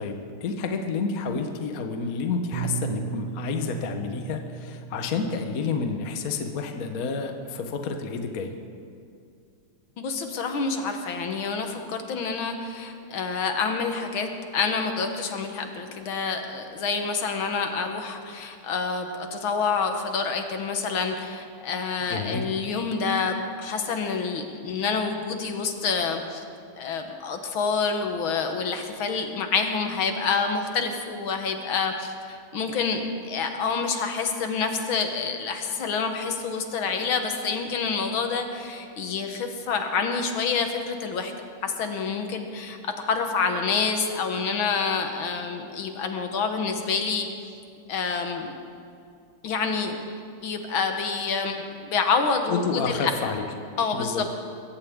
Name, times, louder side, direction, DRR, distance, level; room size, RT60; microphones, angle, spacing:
voice 1, 0.0-8.5 22.1-22.5 52.5-53.4 53.9-54.2, left 4 dB, 50° left, 5 dB, 1.3 m, -29 dB
Bass guitar, 2.5-7.0 7.8-8.8, right 7 dB, 85° right, 1.8 m, -37 dB
voice 2, 10.0-26.4 26.8-41.3 41.6-47.3 47.9-48.6 49.4-50.0 50.4-51.6 51.9-53.1 53.8-54.3, left 5 dB, 65° left, 5 dB, 1.9 m, -27 dB
22.0 x 16.0 x 3.7 m, 2.4 s
omnidirectional pair, 2.4 m